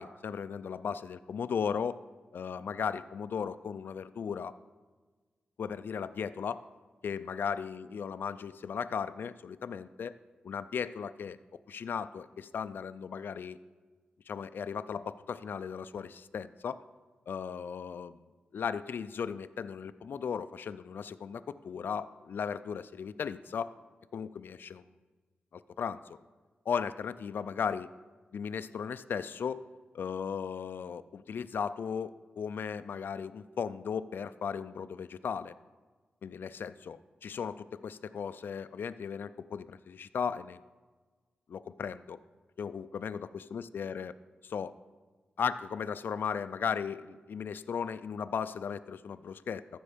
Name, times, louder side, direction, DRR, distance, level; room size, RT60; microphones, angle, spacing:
voice 1, 0.0-2.0 2.3-4.5 5.6-6.6 7.0-10.1 10.4-11.4 11.7-13.6 14.3-16.8 17.3-18.2 18.5-23.7 24.1-24.8 25.5-26.0 26.7-27.9 28.3-29.6 29.9-35.5 36.2-40.6 41.5-42.2 42.6-44.1 44.4-44.7 45.4-49.6, left 6 dB, 75° left, 12 dB, 0.4 m, -36 dB
14.0 x 6.3 x 5.1 m, 1.3 s
wide cardioid pair, 130°, 4 cm